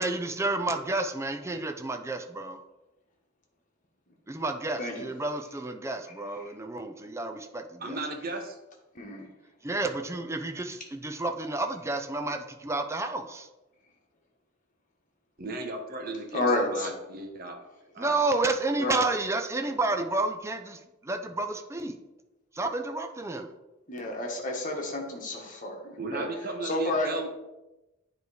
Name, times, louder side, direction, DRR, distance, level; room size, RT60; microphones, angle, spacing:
voice 1, 0.0-2.6 4.3-8.0 9.6-13.5 18.0-21.9 22.6-23.5, right 2 dB, 15° right, 6 dB, 0.5 m, -30 dB
voice 2, 7.8-8.5 15.4-17.6 17.9-18.3 26.0-27.3, right 2 dB, 45° right, 4 dB, 0.9 m, -36 dB
voice 3, 8.9-9.3 16.3-16.9 18.8-19.0 23.9-26.3 26.6-27.3, left 2 dB, 40° left, 1 dB, 1.4 m, -30 dB
9.2 x 3.2 x 4.9 m, 0.99 s
head